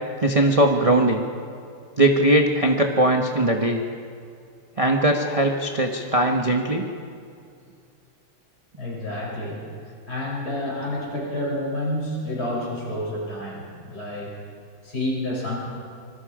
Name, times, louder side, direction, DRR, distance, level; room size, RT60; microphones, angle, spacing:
voice 1, 0.2-1.3 2.0-3.8 4.8-6.9, right 1 dB, 20° right, 1 dB, 1.0 m, -20 dB
voice 2, 8.8-9.6 10.1-14.3 14.8-15.6, left 1 dB, 45° left, -4 dB, 7.2 m, -29 dB
26.0 x 22.0 x 5.0 m, 2.3 s
omnidirectional pair, 2.4 m